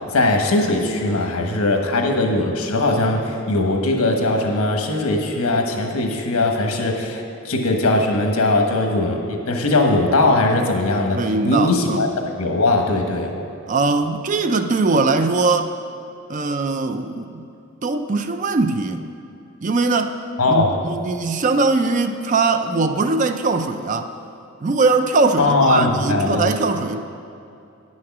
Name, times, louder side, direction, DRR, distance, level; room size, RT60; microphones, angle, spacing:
voice 1, 0.1-13.3 20.4-20.7 25.4-26.5, left 2 dB, 85° left, 2 dB, 1.2 m, -20 dB
voice 2, 11.2-12.0 13.7-15.8 16.3-17.5 17.8-19.0 19.6-20.2 20.5-24.1 24.6-27.0, right 3 dB, 35° right, 8 dB, 0.4 m, -21 dB
9.9 x 6.3 x 6.0 m, 2.6 s
head